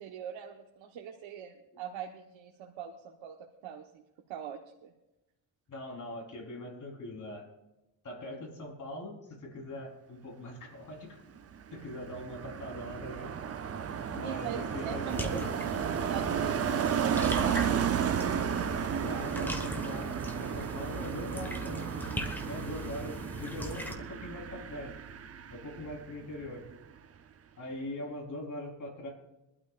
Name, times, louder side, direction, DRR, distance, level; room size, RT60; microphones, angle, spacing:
voice 1, 0.0-4.0 4.3-4.9 14.2-15.4 15.8-18.2, right 9 dB, 90° right, 1 dB, 1.3 m, -42 dB
voice 2, 5.7-7.5 8.0-11.2 11.7-13.3 14.1-15.6 19.0-22.0 22.5-24.9 25.5-26.6 27.6-29.1, left 1 dB, 40° left, -1 dB, 4.0 m, -41 dB
Car passing by, 11.4-26.1 26.4-26.7, right 7 dB, 35° right, 0.7 m, -33 dB
sound 1, 14.8-22.8, right 6 dB, 50° right, 1.6 m, -47 dB
sound 2, 15.1-24.0, equal, 5° left, 1.3 m, -40 dB
23.0 x 12.5 x 2.5 m, 0.96 s
cardioid pair, 160°, 45 cm